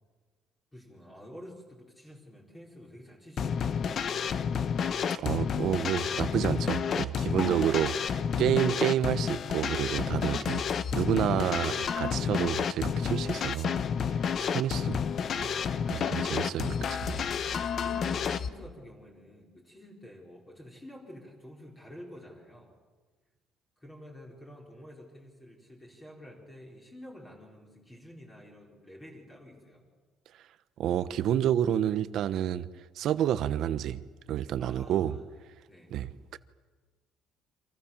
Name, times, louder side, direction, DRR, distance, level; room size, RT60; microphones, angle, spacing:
voice 1, 0.7-4.5 7.4-8.0 17.8-22.7 23.8-29.8 34.6-35.2 35.7-35.9, equal, 10° left, 4.6 m, -49 dB
sound 1, 3.4-18.5, left 7 dB, 40° left, 1.0 m, -30 dB
voice 2, 5.1-7.9 8.4-10.6 10.9-13.7 14.5-15.0 15.4-15.5 15.9-17.2 17.5-17.6 30.8-32.7 33.0-34.0 34.3-35.2 35.9-36.4, right 10 dB, 55° right, 1.1 m, -29 dB
29.5 x 27.0 x 7.4 m
cardioid pair, 165°, 0 cm